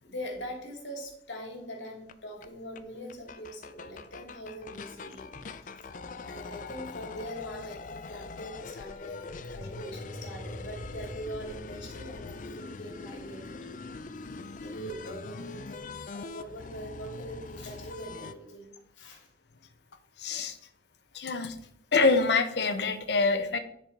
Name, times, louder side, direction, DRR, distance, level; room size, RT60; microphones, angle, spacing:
voice 1, 0.0-5.3 5.6-13.6 14.6-18.7 18.9-19.3, equal, 85° left, 1 dB, 2.5 m, -42 dB
sound 1, 2.1-2.2 2.4-2.5 2.7-2.8 3.1-18.3, left 4 dB, 45° left, 0.4 m, -43 dB
sound 2, 9.0-14.0, equal, 55° right, 3.7 m, -46 dB
voice 2, 20.2-20.6 21.1-21.5 21.9-23.6, left 3 dB, 65° left, 8 dB, 0.8 m, -25 dB
10.0 x 4.2 x 4.5 m, 0.69 s
head